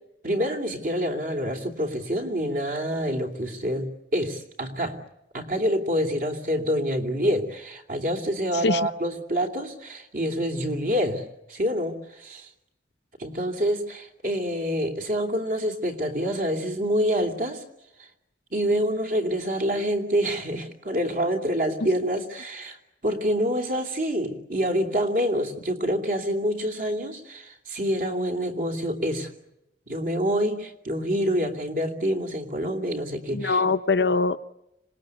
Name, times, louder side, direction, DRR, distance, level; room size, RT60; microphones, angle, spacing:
voice 1, 0.2-5.0 5.3-12.5 13.2-17.6 18.0-18.1 18.5-22.8 23.0-29.3 29.9-33.6, equal, 50° right, 4 dB, 3.1 m, -27 dB
voice 2, 8.5-8.9 33.3-34.4, left 4 dB, 65° left, 10 dB, 0.9 m, -23 dB
26.0 x 20.0 x 9.7 m, 0.88 s
head